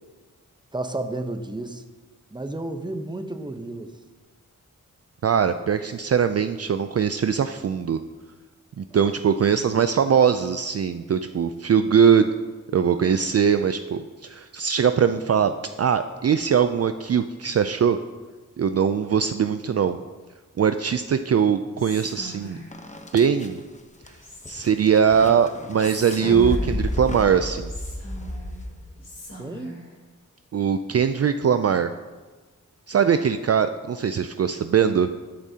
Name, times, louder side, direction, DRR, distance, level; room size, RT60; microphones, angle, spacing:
voice 1, 0.7-1.8 2.3-3.9 9.0-9.1 29.4-29.8, right 2 dB, 15° right, 7 dB, 0.8 m, -32 dB
voice 2, 5.2-8.0 8.8-12.3 12.7-15.5 15.8-18.0 18.6-20.0 20.6-22.6 23.1-23.6 24.5-27.7 30.5-31.9 32.9-35.1, right 7 dB, 50° right, 9 dB, 0.4 m, -21 dB
Whispering, 21.8-22.9 24.2-24.9 25.8-27.0 27.7-28.6 29.0-29.9, right 1 dB, 50° left, 3.4 m, -40 dB
sound 1, 22.7-29.1, left 1 dB, 20° left, 0.9 m, -32 dB
13.5 x 8.5 x 2.8 m, 1.3 s
wide cardioid pair, 60°, 33 cm